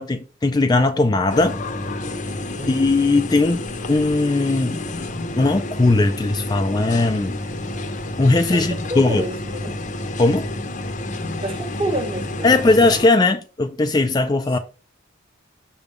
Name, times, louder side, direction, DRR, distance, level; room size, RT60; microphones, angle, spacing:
voice 1, 0.0-1.6 2.7-4.8 5.4-7.4 8.2-9.2 10.2-10.5 12.4-14.6, left 2 dB, 20° left, 0.4 m, -18 dB
sound 1, 1.3-13.1, left 2 dB, 40° left, 0.7 m, -29 dB
voice 2, 2.5-2.9 8.5-9.8 11.4-12.6, right 1 dB, 30° right, 1.3 m, -29 dB
7.0 x 3.6 x 5.2 m
head